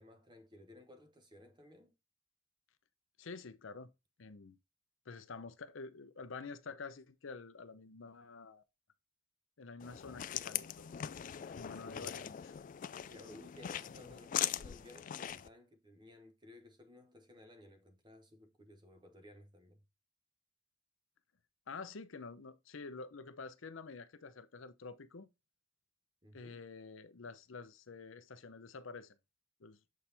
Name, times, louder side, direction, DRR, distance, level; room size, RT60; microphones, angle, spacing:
voice 1, 0.0-1.9 11.7-12.2 12.9-19.8 26.2-26.6, left 1 dB, 20° right, 1.1 m, -57 dB
voice 2, 3.2-3.9 4.2-4.6 5.1-8.6 9.6-12.5 21.7-25.3 26.3-29.1 29.6-29.8, left 4 dB, 70° left, 0.7 m, -49 dB
sound 1, 9.8-15.5, left 10 dB, 40° left, 0.3 m, -41 dB
7.2 x 4.3 x 3.4 m
head